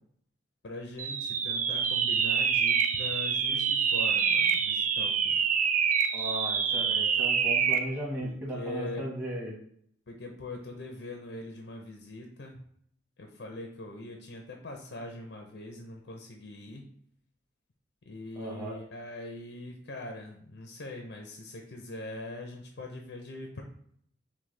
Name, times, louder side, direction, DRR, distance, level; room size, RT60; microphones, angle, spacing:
voice 1, 0.6-5.4 8.2-9.0 10.1-12.6 13.2-16.8 18.1-23.6, left 2 dB, 65° left, 2 dB, 0.6 m, -42 dB
sound 1, 1.0-7.9, right 7 dB, 40° right, 0.3 m, -26 dB
voice 2, 6.1-9.6 18.3-18.8, equal, 10° right, -5 dB, 1.2 m, -36 dB
6.0 x 2.2 x 3.2 m, 0.66 s
head